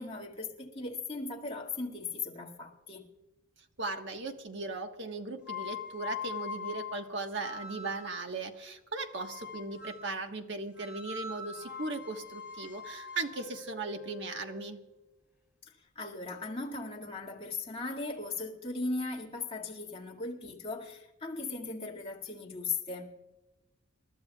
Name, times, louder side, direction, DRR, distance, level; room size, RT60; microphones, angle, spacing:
voice 1, 0.0-3.0 16.0-23.1, left 3 dB, 30° left, 2.1 m, -38 dB
voice 2, 3.8-14.8, right 3 dB, 60° right, 1.4 m, -38 dB
sound 1, 5.4-8.3 9.1-10.2 10.8-14.7, left 5 dB, 5° right, 3.9 m, -43 dB
28.0 x 12.5 x 2.4 m
head